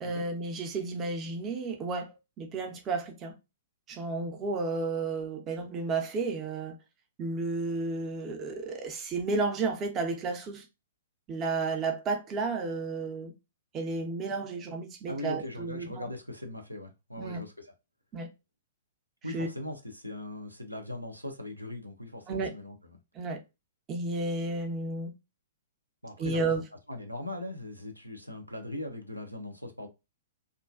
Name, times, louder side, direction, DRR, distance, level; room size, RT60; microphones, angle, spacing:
voice 1, 0.0-3.3 3.9-6.7 7.2-10.6 11.3-13.3 13.7-16.1 17.2-17.4 18.1-18.3 19.3-19.5 22.3-22.5 23.1-23.4 23.9-25.1 26.2-26.6, right 3 dB, 25° right, 0.5 m, -32 dB
voice 2, 15.1-17.7 19.2-22.8 26.0-26.6 26.9-29.9, left 1 dB, 90° right, 0.5 m, -40 dB
2.3 x 2.2 x 2.4 m
figure-of-eight pair, 110°, 0 cm